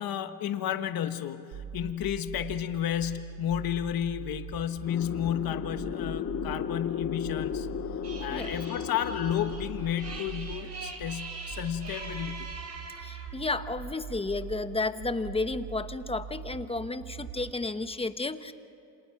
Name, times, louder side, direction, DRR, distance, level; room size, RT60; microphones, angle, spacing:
voice 1, 0.0-7.7 8.2-12.5, left 10 dB, 65° left, 8 dB, 1.4 m, -32 dB
sound 1, 1.5-17.5, right 7 dB, 85° right, 1.8 m, -42 dB
sound 2, 4.8-11.0, left 9 dB, 40° left, 0.9 m, -35 dB
sound 3, 8.0-13.4, right 4 dB, 45° right, 4.1 m, -43 dB
voice 2, 13.0-18.5, left 3 dB, 15° left, 10 dB, 1.1 m, -32 dB
29.0 x 26.5 x 5.9 m, 2.6 s
cardioid pair, 105°, 38 cm